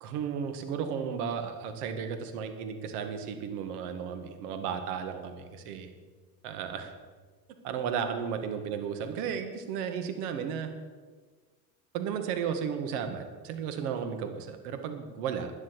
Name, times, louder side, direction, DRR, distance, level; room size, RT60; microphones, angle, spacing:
voice 1, 0.0-5.9 6.4-6.9 7.6-10.7 11.9-15.5, right 7 dB, 75° right, 7 dB, 2.0 m, -34 dB
12.0 x 9.6 x 7.7 m, 1.4 s
hypercardioid pair, 75°, 47 cm